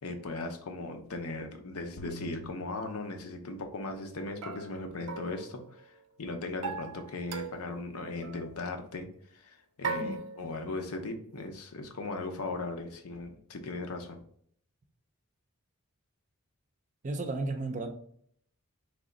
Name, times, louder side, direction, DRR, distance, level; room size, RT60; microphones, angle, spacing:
voice 1, 0.0-14.2, left 2 dB, 80° left, 0.7 m, -38 dB
sound 1, 2.0-3.8, right 2 dB, 45° left, 0.5 m, -48 dB
sound 2, 2.0-2.1 4.4-6.0 6.6-7.8 8.2-8.6 9.8-10.9, right 4 dB, 85° right, 0.5 m, -39 dB
voice 2, 10.0-10.3 17.0-17.9, right 2 dB, 35° right, 0.5 m, -34 dB
3.4 x 3.0 x 3.8 m
head